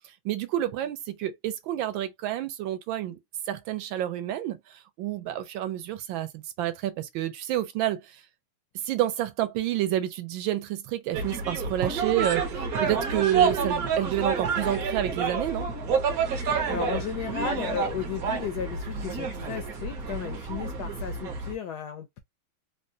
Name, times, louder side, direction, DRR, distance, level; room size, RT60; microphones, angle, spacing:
voice 1, 0.2-3.2 3.5-8.2 8.8-15.7, right 12 dB, 75° right, 1.3 m, -29 dB
sound 1, 11.1-21.5, right 5 dB, 60° right, 1.1 m, -29 dB
voice 2, 16.4-22.2, left 8 dB, 75° left, 0.9 m, -34 dB
3.6 x 2.1 x 2.6 m
omnidirectional pair, 2.2 m